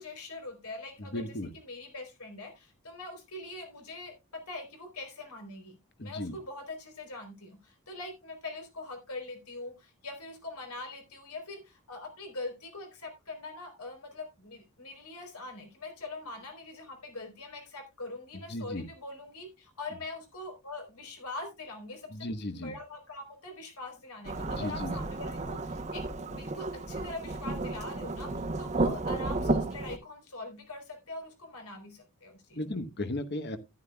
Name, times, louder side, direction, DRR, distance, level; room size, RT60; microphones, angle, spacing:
voice 1, 0.0-1.3 1.7-22.3 22.5-32.6, left 2 dB, 85° left, 3.7 m, -43 dB
voice 2, 1.0-1.5 6.0-6.4 18.5-18.9 22.1-22.7 24.6-25.0 32.6-33.6, left 1 dB, 50° left, 1.1 m, -35 dB
Thunderstorm / Rain, 24.2-30.0, right 2 dB, 30° right, 0.9 m, -32 dB
13.5 x 10.5 x 2.3 m
head